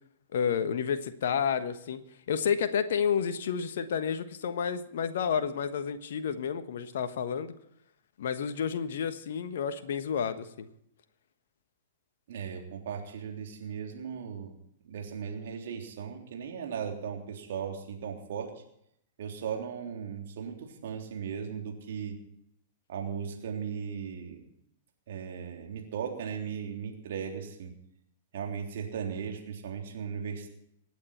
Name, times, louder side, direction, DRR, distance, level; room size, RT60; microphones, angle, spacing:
voice 1, 0.3-2.0 2.3-7.5 8.2-10.7, left 7 dB, 60° left, 9 dB, 1.2 m, -30 dB
voice 2, 12.3-14.5 14.8-18.5 19.2-22.2 22.9-24.4 25.1-27.7 28.3-30.5, right 7 dB, 60° right, 2 dB, 3.4 m, -37 dB
25.5 x 9.5 x 4.3 m, 0.74 s
figure-of-eight pair, 105°, 0 cm